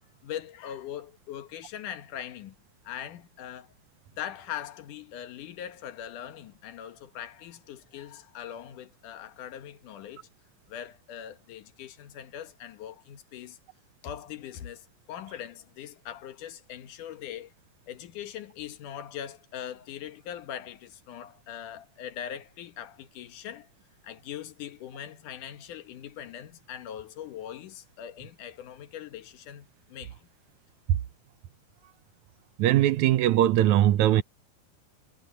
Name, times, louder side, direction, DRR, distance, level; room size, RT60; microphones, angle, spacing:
voice 1, 0.2-2.6 2.8-3.7 4.1-10.3 10.7-13.6 14.0-17.5 17.9-23.7 24.0-30.3, left 10 dB, 80° left, 2.8 m, -41 dB
voice 2, 32.6-34.2, right 12 dB, 75° right, 2.0 m, -21 dB
omnidirectional pair, 3.6 m